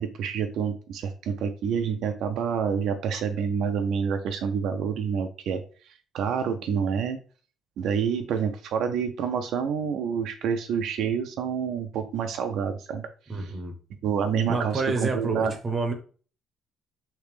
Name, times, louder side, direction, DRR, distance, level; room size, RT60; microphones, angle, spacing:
voice 1, 0.0-7.2 7.8-13.0 13.4-13.5 14.0-15.5, right 7 dB, 65° right, 6 dB, 0.4 m, -28 dB
voice 2, 13.3-13.7 14.5-15.9, right 3 dB, 25° right, 4 dB, 0.7 m, -28 dB
3.2 x 2.8 x 3.3 m, 0.39 s
cardioid pair, 170°, 0 cm